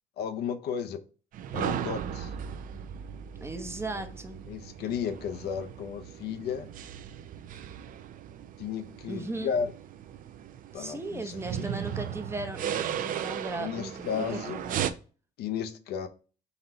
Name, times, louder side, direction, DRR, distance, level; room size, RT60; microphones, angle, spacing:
voice 1, 0.2-1.0 1.5-2.3 4.5-6.7 8.6-9.7 10.7-11.8 13.6-14.6 15.4-16.1, left 7 dB, 70° left, 0.6 m, -34 dB
sound 1, 1.3-14.9, right 9 dB, 55° right, 0.4 m, -37 dB
voice 2, 3.4-4.4 9.1-9.5 10.7-14.9, right 2 dB, 15° right, 0.7 m, -37 dB
4.0 x 2.7 x 4.3 m
cardioid pair, 110°, 17 cm